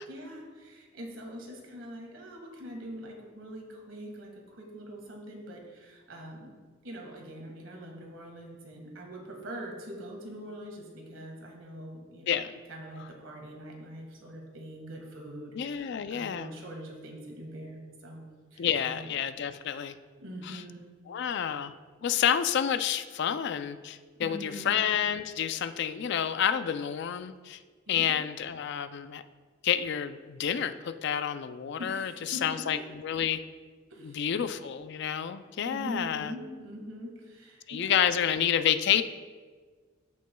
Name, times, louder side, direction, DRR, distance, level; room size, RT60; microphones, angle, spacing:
voice 1, 0.1-6.5 6.8-18.2 18.5-19.1 20.2-20.8 24.2-24.8 27.9-28.2 31.8-32.8 33.9-34.2 35.6-38.2, equal, 75° right, 1 dB, 1.7 m, -43 dB
voice 2, 12.3-12.6 15.6-16.5 18.6-19.9 20.5-20.6 21.1-21.7 22.0-27.6 27.9-29.2 29.6-32.8 33.0-33.4 34.0-36.3 37.7-39.0, left 9 dB, 60° left, 11 dB, 0.4 m, -29 dB
14.5 x 6.1 x 2.3 m, 1.5 s
head